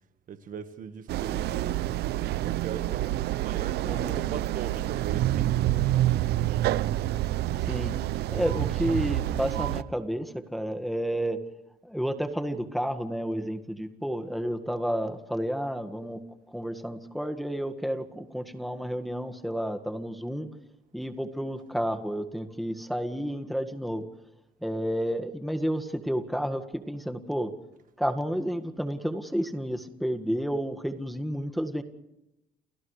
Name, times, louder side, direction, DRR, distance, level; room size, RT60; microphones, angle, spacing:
voice 1, 0.3-1.9 2.4-5.9, right 7 dB, 50° right, 1.5 m, -39 dB
sound 1, 1.1-9.8, right 14 dB, 75° right, 0.8 m, -28 dB
voice 2, 3.8-4.2 7.6-7.9 8.3-11.4 11.8-16.2 16.5-20.5 20.9-24.1 24.6-27.5 28.0-31.8, equal, ahead, 1.8 m, -31 dB
29.5 x 29.0 x 3.3 m
cardioid pair, 110°, 17 cm